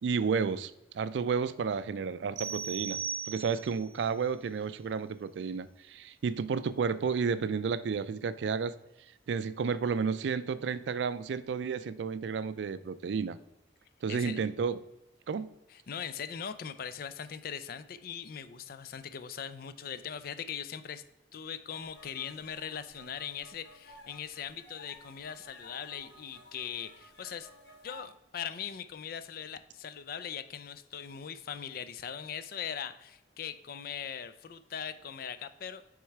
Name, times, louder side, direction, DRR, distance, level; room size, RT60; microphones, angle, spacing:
voice 1, 0.0-3.0 3.3-8.7 9.3-13.4 14.0-14.8 15.3-15.5, right 5 dB, 75° right, 15 dB, 0.3 m, -32 dB
sound 1, 2.4-3.9, right 7 dB, 45° right, 0.9 m, -37 dB
voice 2, 14.1-14.4 15.7-21.0 21.3-27.5 27.8-35.8, left 8 dB, 55° left, 13 dB, 0.4 m, -40 dB
sound 2, 21.7-28.0, left 1 dB, 70° left, 1.4 m, -55 dB
6.2 x 3.7 x 4.5 m, 0.91 s
head